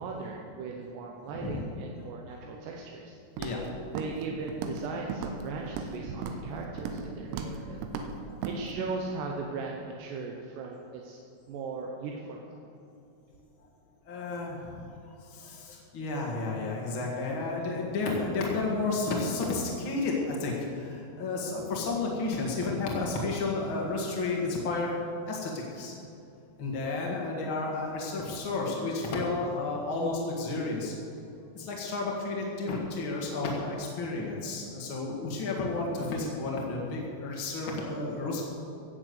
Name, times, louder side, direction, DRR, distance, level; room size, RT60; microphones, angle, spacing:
voice 1, 0.0-3.2 3.9-7.8 8.5-11.2 11.5-12.5, right 4 dB, 70° right, 0 dB, 2.8 m, -38 dB
Walk footsteps, 3.4-3.7 4.0-4.2 4.5-4.9 5.1-5.9 6.2-6.5 6.8-7.1 7.3-7.6 7.8-8.1 8.4-8.6, right 6 dB, 90° right, 3.7 m, -35 dB
voice 2, 14.0-14.8 15.2-24.9 25.3-25.9 26.6-30.9 31.5-38.4, left 3 dB, 70° left, -2 dB, 1.2 m, -32 dB
15.5 x 8.8 x 8.1 m, 2.7 s
omnidirectional pair, 5.9 m